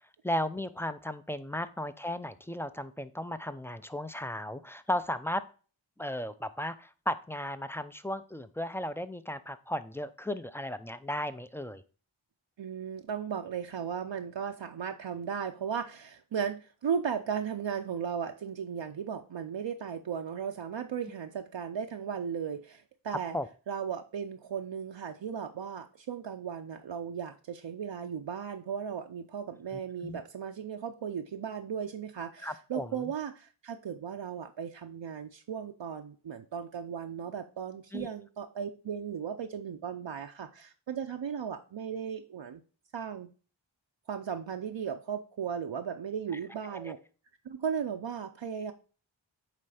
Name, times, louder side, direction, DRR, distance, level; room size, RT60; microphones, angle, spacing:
voice 1, 0.2-5.4 6.0-11.8 23.3-23.5 29.7-30.2 32.4-32.9 37.9-38.1 46.7-46.9, left 1 dB, 5° left, 12 dB, 0.5 m, -35 dB
voice 2, 12.6-23.4 23.7-42.6 42.9-43.3 44.1-47.0 47.4-48.7, right 7 dB, 65° right, 4 dB, 0.6 m, -36 dB
8.7 x 3.3 x 4.9 m, 0.38 s
cardioid pair, 40°, 47 cm